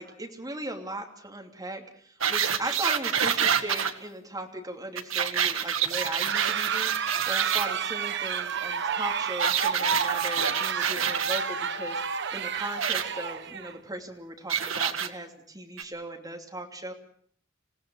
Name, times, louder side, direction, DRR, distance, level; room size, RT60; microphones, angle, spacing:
voice 1, 0.0-16.9, right 1 dB, 20° right, 3 dB, 2.8 m, -38 dB
sound 1, 2.2-3.9 5.0-7.7 9.4-11.4 12.8-13.0 14.5-15.1 15.8-15.9, right 8 dB, 85° right, 1.6 m, -27 dB
sound 2, 5.9-13.8, right 6 dB, 60° right, 1.0 m, -30 dB
27.5 x 17.0 x 6.3 m, 0.62 s
head